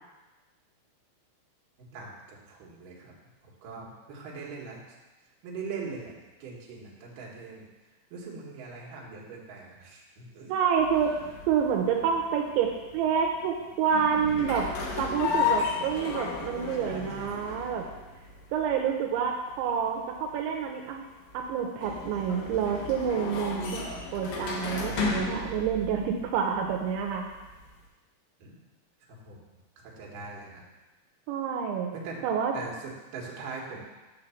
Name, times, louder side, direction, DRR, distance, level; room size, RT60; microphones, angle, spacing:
voice 1, 1.8-3.1 3.4-5.0 5.4-10.5 11.2-11.3 16.8-17.3 28.4-28.6 29.0-29.4 29.8-30.7 31.9-32.2 32.5-33.8, right 4 dB, 60° right, -3 dB, 2.4 m, -42 dB
voice 2, 10.5-11.1 11.5-14.7 15.0-17.9 18.5-21.0 21.3-23.8 24.1-27.3 31.3-31.9 32.2-32.5, right 7 dB, 85° right, 2 dB, 2.9 m, -28 dB
sound 1, 10.8-27.8, left 5 dB, 75° left, 2.1 m, -35 dB
9.0 x 3.9 x 7.0 m, 1.2 s
omnidirectional pair, 5.4 m